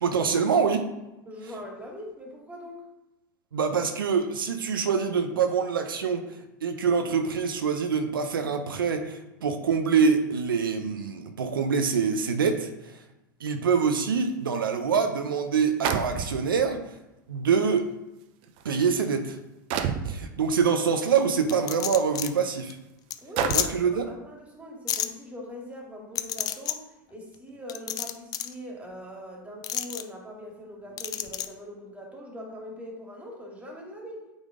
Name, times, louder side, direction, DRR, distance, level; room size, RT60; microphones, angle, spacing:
voice 1, 0.0-0.9 3.5-6.2 6.6-13.0 13.4-16.8 17.3-17.9 18.6-19.4 20.0-22.8 23.5-24.1, right 6 dB, 90° right, 6 dB, 0.7 m, -25 dB
voice 2, 1.3-2.8 23.2-34.2, left 1 dB, 10° right, -1 dB, 2.1 m, -42 dB
sound 1, 14.7-14.8 15.8-16.6 17.6-17.7 18.4-18.7 19.7-20.2 21.5-21.6 22.2-22.3 23.4-23.9, right 7 dB, 50° right, 0.6 m, -29 dB
Poker Chips stacking, 21.5-22.3 22.7-22.8 23.1-23.2 23.5-23.7 24.9-25.1 26.1-26.7 27.7-28.5 29.6-30.0 31.0-31.5, left 11 dB, 35° left, 0.5 m, -29 dB
8.8 x 3.6 x 3.7 m, 0.96 s
hypercardioid pair, 100°, 11 cm